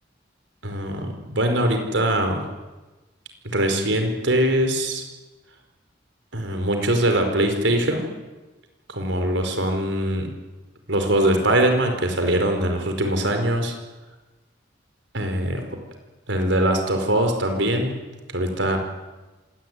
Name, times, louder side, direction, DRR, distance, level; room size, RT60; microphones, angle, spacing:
voice 1, 0.6-2.4 3.4-5.0 6.3-8.1 8.9-10.3 10.9-13.7 15.1-15.6 16.3-18.0 18.3-18.8, right 1 dB, 80° right, 5 dB, 5.0 m, -22 dB
26.0 x 18.0 x 9.7 m, 1.2 s
head